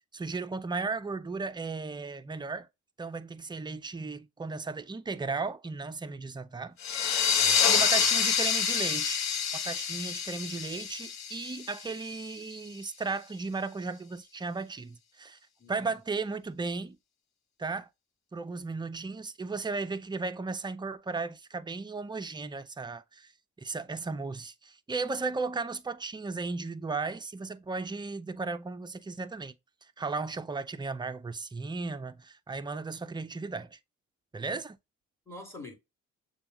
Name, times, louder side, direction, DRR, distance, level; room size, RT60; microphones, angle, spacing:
voice 1, 0.0-2.7 3.0-7.1 7.7-9.2 9.6-15.4 15.7-17.0 17.6-17.9 18.3-23.3 23.6-29.5 30.0-33.8 34.3-34.8, right 4 dB, 15° right, 0.5 m, -35 dB
sound 1, 6.8-12.1, left 7 dB, 65° left, 0.8 m, -27 dB
voice 2, 7.3-8.1 15.6-16.0 35.3-35.7, left 2 dB, 10° left, 2.3 m, -45 dB
6.8 x 2.3 x 2.9 m
cardioid pair, 90°, 30 cm